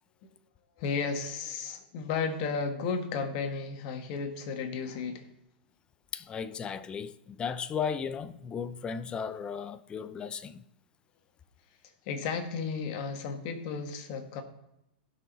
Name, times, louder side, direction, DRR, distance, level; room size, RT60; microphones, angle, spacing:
voice 1, 0.8-5.3 12.0-14.4, left 5 dB, 45° left, 1.5 m, -33 dB
voice 2, 6.1-10.6, left 7 dB, 15° left, 0.5 m, -35 dB
16.0 x 6.1 x 4.0 m
hypercardioid pair, 145°, 5 cm